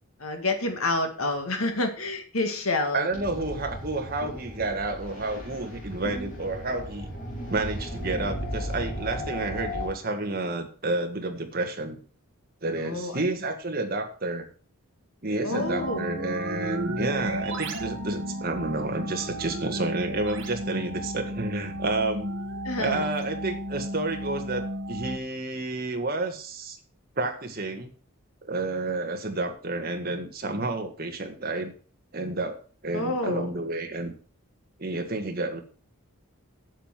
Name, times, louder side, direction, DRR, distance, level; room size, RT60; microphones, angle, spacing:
voice 1, 0.2-3.0 12.8-13.2 15.4-16.1 22.6-23.0 32.9-33.5, left 2 dB, 75° left, 6 dB, 1.9 m, -28 dB
voice 2, 2.9-7.1 7.5-12.0 12.6-14.5 15.2-22.3 22.8-26.8 27.2-27.9 28.5-31.7 32.1-34.1 34.8-35.6, right 2 dB, 45° right, 4 dB, 1.7 m, -30 dB
sound 1, 3.1-9.9, equal, 40° left, 4.8 m, -35 dB
sound 2, 15.5-25.2, right 1 dB, 60° right, 1.5 m, -33 dB
8.2 x 7.6 x 5.9 m, 0.40 s
head